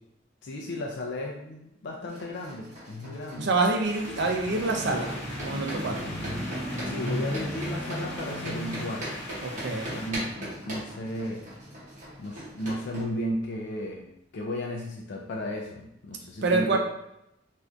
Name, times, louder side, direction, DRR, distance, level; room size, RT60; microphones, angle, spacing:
voice 1, 0.4-3.5 6.8-9.3 9.5-11.5 12.2-16.8, left 1 dB, 65° left, 0 dB, 0.4 m, -35 dB
sound 1, 2.1-13.0, right 1 dB, 45° right, 1.1 m, -41 dB
voice 2, 3.4-5.1 5.4-6.0 9.4-10.0 16.4-16.8, right 3 dB, 60° right, 2 dB, 0.5 m, -26 dB
sound 2, 3.8-10.1, left 1 dB, 35° left, 1.1 m, -41 dB
sound 3, 3.8-12.3 12.9-13.0, equal, 10° right, 1.0 m, -37 dB
3.3 x 2.6 x 2.4 m, 0.82 s
head